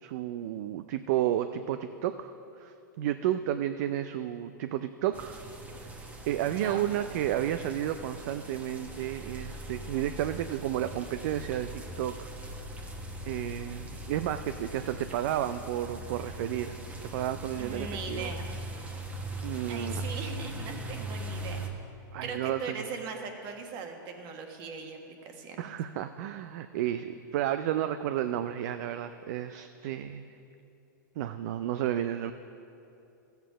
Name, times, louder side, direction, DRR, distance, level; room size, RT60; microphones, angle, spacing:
voice 1, 0.0-5.4 6.3-12.3 12.5-12.7 13.3-16.8 17.1-18.3 19.4-20.0 22.1-22.9 25.6-30.3 31.2-32.3, right 11 dB, 60° right, 10 dB, 0.4 m, -32 dB
sound 1, 5.1-21.7, right 1 dB, 15° right, 1.1 m, -40 dB
voice 2, 6.5-6.9 17.6-18.6 19.7-21.6 22.2-25.0 25.2-25.7, right 5 dB, 40° right, 4 dB, 1.4 m, -40 dB
13.5 x 8.0 x 5.0 m, 2.8 s
hypercardioid pair, 120°, 10 cm